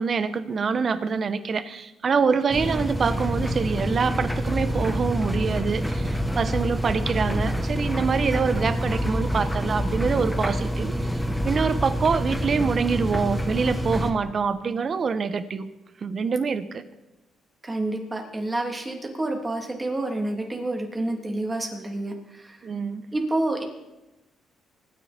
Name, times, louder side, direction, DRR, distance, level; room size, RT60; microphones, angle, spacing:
voice 1, 0.0-11.1 11.4-15.7 16.0-16.8 22.6-23.0, right 5 dB, 45° right, 13 dB, 1.1 m, -25 dB
sound 1, 2.5-14.1, equal, 5° left, 1.7 m, -27 dB
voice 2, 17.6-22.6 23.1-23.6, right 2 dB, 20° right, 3 dB, 3.1 m, -28 dB
24.5 x 9.9 x 4.5 m, 0.99 s
cardioid pair, 90°, 0 cm